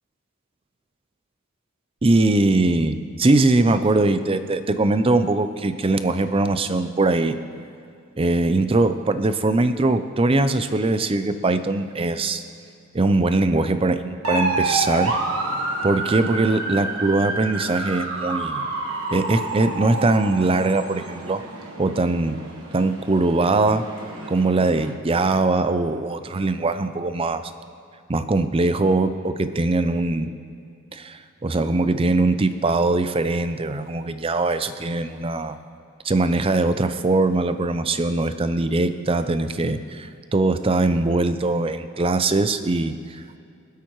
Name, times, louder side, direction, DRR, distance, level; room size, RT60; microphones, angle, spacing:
voice 1, 2.0-7.4 8.2-12.4 12.9-15.1 15.8-18.7 19.1-21.4 21.8-22.4 22.7-23.8 24.3-27.5 28.1-30.3 30.9-35.6 36.0-43.4, right 2 dB, 25° right, 10 dB, 0.5 m, -21 dB
sound 1, 14.2-24.9, right 2 dB, 90° right, 1.3 m, -29 dB
24.0 x 8.2 x 3.1 m, 2.5 s
head